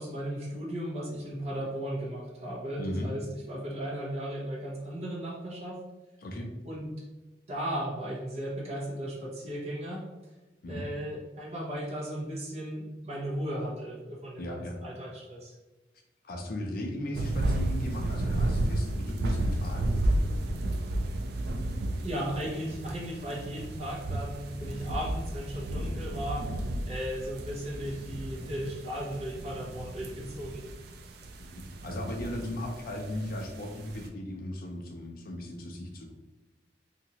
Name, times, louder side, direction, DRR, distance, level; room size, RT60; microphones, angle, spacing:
voice 1, 0.0-5.8 6.6-6.9 7.5-10.0 10.7-15.5 22.0-26.5 26.8-30.7, equal, 35° right, -3 dB, 0.7 m, -36 dB
voice 2, 2.8-3.1 6.2-6.5 10.6-10.9 14.4-14.8 16.2-19.8 31.4-36.1, left 1 dB, 55° left, 2 dB, 0.5 m, -37 dB
sound 1, 17.1-34.1, right 1 dB, 60° right, 0.3 m, -33 dB
2.8 x 2.5 x 2.8 m, 1.1 s
head